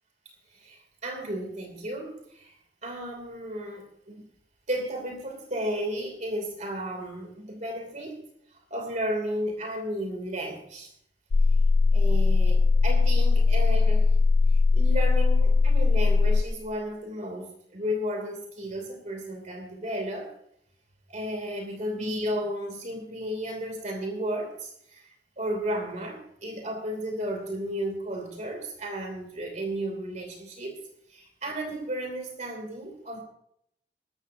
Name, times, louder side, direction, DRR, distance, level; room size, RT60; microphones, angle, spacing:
voice 1, 0.5-2.5 2.8-4.2 4.7-8.2 8.7-10.9 11.9-14.1 14.7-20.3 21.1-25.0 25.4-30.8 31.1-33.2, equal, 40° right, 4 dB, 2.8 m, -33 dB
sound 1, 11.3-16.4, left 4 dB, 55° left, 0.4 m, -20 dB
19.5 x 14.0 x 2.7 m, 0.71 s
head